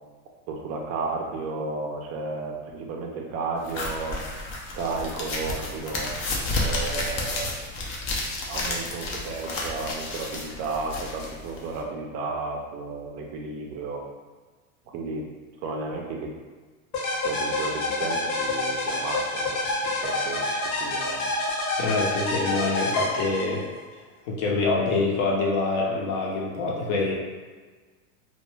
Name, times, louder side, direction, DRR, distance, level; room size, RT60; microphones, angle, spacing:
voice 1, 0.5-4.2 4.8-6.1 6.5-7.5 8.5-14.0 14.9-15.3 15.6-16.3 17.2-20.5 20.8-21.3, right 3 dB, 35° right, 1 dB, 0.4 m, -33 dB
sound 1, 3.6-11.8, left 2 dB, 30° left, 0.4 m, -31 dB
sound 2, 16.9-23.8, left 2 dB, 90° left, 0.8 m, -28 dB
voice 2, 21.8-23.7 24.3-27.1, left 3 dB, 60° left, -2 dB, 0.7 m, -25 dB
2.2 x 2.1 x 3.1 m, 1.4 s
supercardioid pair, 135°, 42 cm